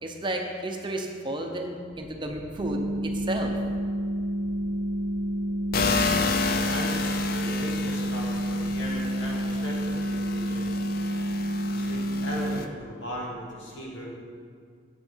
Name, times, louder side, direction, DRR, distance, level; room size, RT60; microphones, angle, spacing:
voice 1, 0.0-3.5, right 1 dB, 25° right, 2 dB, 0.7 m, -32 dB
sound 1, 1.9-11.6, equal, 15° left, 0.8 m, -49 dB
sound 2, 2.6-12.6, right 1 dB, 65° right, 0.4 m, -29 dB
sound 3, 5.7-12.7, left 4 dB, 50° left, 0.5 m, -31 dB
voice 2, 6.0-10.8 11.7-14.1, equal, 75° left, -4 dB, 2.2 m, -38 dB
8.4 x 8.0 x 4.6 m, 2.1 s
head